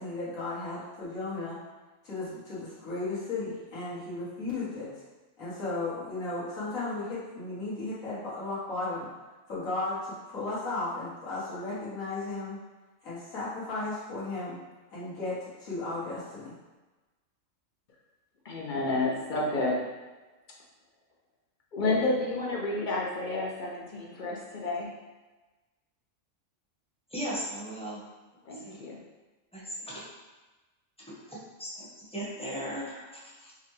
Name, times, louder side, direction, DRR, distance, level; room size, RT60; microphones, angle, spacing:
voice 1, 0.0-1.6 2.0-4.9 5.4-9.1 9.5-12.6 13.0-14.6 14.9-16.5, left 2 dB, 75° left, -9 dB, 1.8 m, -35 dB
voice 2, 18.4-19.9 21.7-24.9 28.5-29.0, left 2 dB, 55° left, -2 dB, 0.6 m, -30 dB
voice 3, 27.1-28.0 28.5-28.8 29.5-30.0 31.1-33.5, equal, 5° left, -7 dB, 0.8 m, -38 dB
5.6 x 2.2 x 3.1 m, 1.2 s
omnidirectional pair, 1.4 m